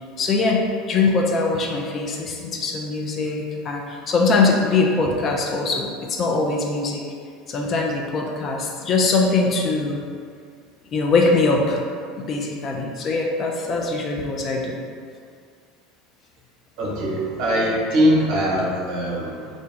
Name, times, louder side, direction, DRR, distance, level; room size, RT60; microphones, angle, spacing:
voice 1, 0.2-0.6 0.9-7.0 7.5-10.0 10.9-11.8 12.2-14.8, left 3 dB, 35° left, 0 dB, 0.4 m, -22 dB
voice 2, 16.8-19.5, equal, 50° right, -5 dB, 0.8 m, -21 dB
2.5 x 2.2 x 3.5 m, 2.2 s
figure-of-eight pair, 70°, 0 cm